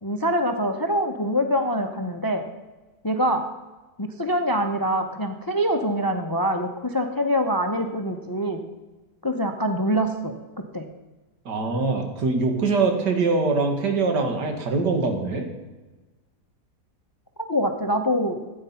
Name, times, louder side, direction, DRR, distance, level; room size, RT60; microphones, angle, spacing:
voice 1, 0.0-2.4 3.0-3.5 4.0-8.6 9.2-10.9 17.5-18.4, equal, 25° left, 6 dB, 0.4 m, -24 dB
voice 2, 11.5-15.5, right 3 dB, 90° right, 5 dB, 2.2 m, -23 dB
13.0 x 9.0 x 5.6 m, 1.2 s
omnidirectional pair, 1.8 m